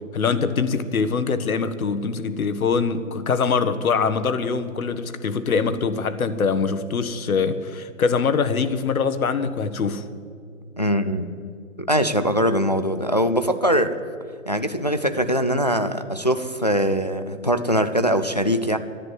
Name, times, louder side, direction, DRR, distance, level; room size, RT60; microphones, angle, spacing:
voice 1, 0.1-10.0, left 5 dB, 80° left, 12 dB, 1.4 m, -23 dB
voice 2, 10.8-11.3 11.9-14.0 14.5-18.8, equal, 30° left, 9 dB, 0.4 m, -22 dB
12.5 x 10.5 x 9.6 m, 2.2 s
hypercardioid pair, 175°, 42 cm